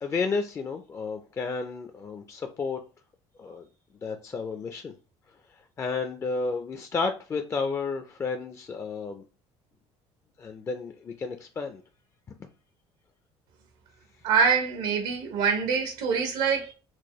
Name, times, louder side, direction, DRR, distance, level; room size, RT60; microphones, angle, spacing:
voice 1, 0.0-2.8 3.4-3.7 4.0-4.9 5.5-9.2 10.4-11.8, left 4 dB, 25° left, 0.4 m, -32 dB
voice 2, 14.2-16.7, right 6 dB, 85° right, 0.8 m, -25 dB
4.5 x 2.3 x 3.0 m
cardioid pair, 135°, 11 cm